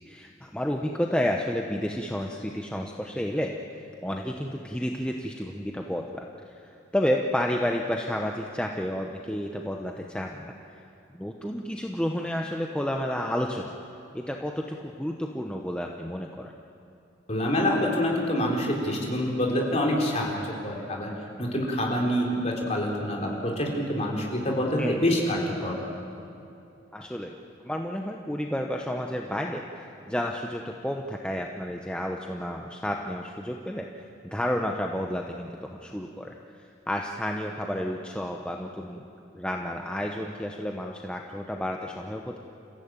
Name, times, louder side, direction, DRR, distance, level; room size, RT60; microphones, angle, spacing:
voice 1, 0.1-10.8 11.1-13.8 14.1-16.5 24.8-25.0 26.9-27.3 27.6-33.9 34.2-39.0 39.3-42.4, equal, 5° left, 1 dB, 0.9 m, -31 dB
voice 2, 17.3-21.1 21.4-25.8, left 1 dB, 35° left, -1 dB, 3.9 m, -26 dB
29.0 x 15.0 x 8.9 m, 2.7 s
head